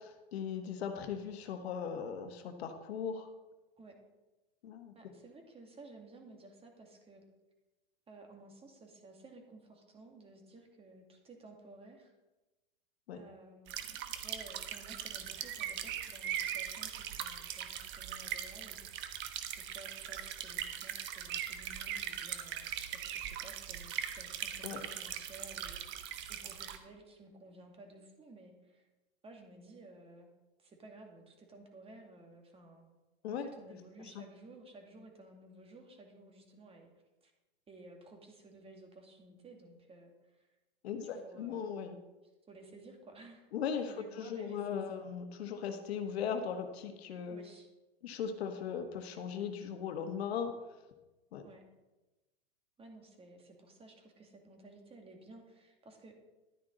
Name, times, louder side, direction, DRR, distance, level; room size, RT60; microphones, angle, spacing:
voice 1, 0.1-3.3 4.6-4.9 13.1-13.2 24.6-24.8 33.2-33.5 34.1-34.2 40.8-42.0 43.5-43.9 44.2-47.4 48.0-50.6 51.3-51.4, left 7 dB, 70° left, 6 dB, 1.4 m, -38 dB
voice 2, 4.9-7.2 8.1-12.1 13.1-28.9 29.2-30.3 30.6-32.9 33.3-36.9 37.2-37.3 37.7-40.5 41.0-41.7 42.5-43.5 43.9-45.0 47.3-47.7 51.4-51.6 52.8-56.1, right 2 dB, 20° right, 2 dB, 2.3 m, -55 dB
sound 1, 13.7-26.8, right 10 dB, 35° right, 1.1 m, -40 dB
12.0 x 9.8 x 4.0 m, 1.1 s
hypercardioid pair, 120°, 32 cm